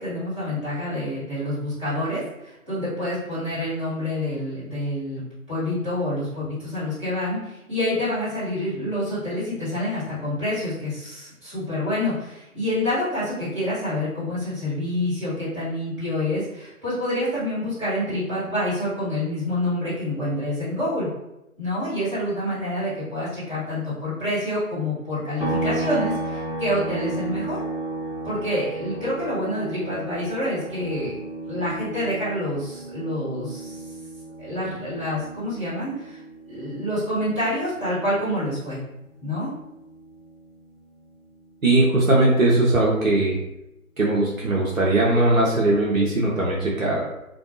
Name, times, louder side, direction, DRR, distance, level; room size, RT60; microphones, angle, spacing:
voice 1, 0.0-5.2 5.5-21.1 21.6-27.6 28.2-31.2 31.5-33.9 34.4-36.2 36.5-38.8 39.2-39.5, left 1 dB, 20° right, -13 dB, 1.3 m, -27 dB
sound 1, 25.4-38.9 39.3-41.5, right 2 dB, 55° left, 0.9 m, -34 dB
voice 2, 41.6-43.4 44.0-47.0, right 2 dB, 65° right, -4 dB, 0.7 m, -19 dB
2.5 x 2.3 x 2.7 m, 0.90 s
figure-of-eight pair, 160°, 43 cm